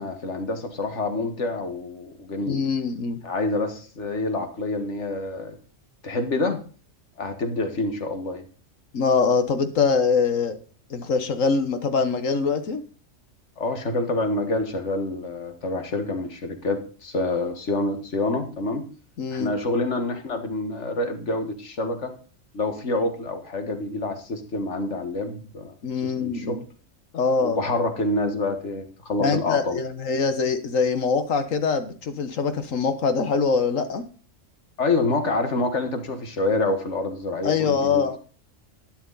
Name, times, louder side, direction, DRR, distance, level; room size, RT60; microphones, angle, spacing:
voice 1, 0.0-2.6 3.2-5.5 6.0-6.6 7.2-8.4 13.6-18.8 19.3-22.1 22.5-25.7 26.0-26.6 27.4-29.8 34.8-38.0, left 2 dB, 65° left, 7 dB, 2.1 m, -27 dB
voice 2, 2.5-3.2 8.9-10.6 10.9-12.8 19.2-19.5 25.8-26.6 27.1-27.6 29.2-34.0 37.4-38.2, left 5 dB, 80° left, 10 dB, 1.7 m, -23 dB
12.0 x 10.5 x 4.0 m, 0.39 s
omnidirectional pair, 1.3 m